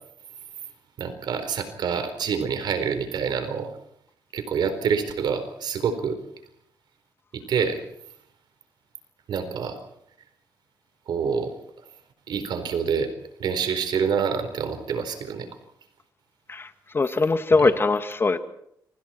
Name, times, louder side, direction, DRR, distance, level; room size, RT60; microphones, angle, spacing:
voice 1, 1.0-3.7 4.3-6.2 7.3-7.8 9.3-9.8 11.1-11.5 12.3-13.1 13.4-15.5 17.5-17.7, right 6 dB, 75° right, 9 dB, 4.4 m, -27 dB
voice 2, 16.9-18.4, left 3 dB, 30° left, 9 dB, 2.0 m, -21 dB
29.5 x 25.5 x 4.5 m, 0.74 s
cardioid pair, 90°, 8 cm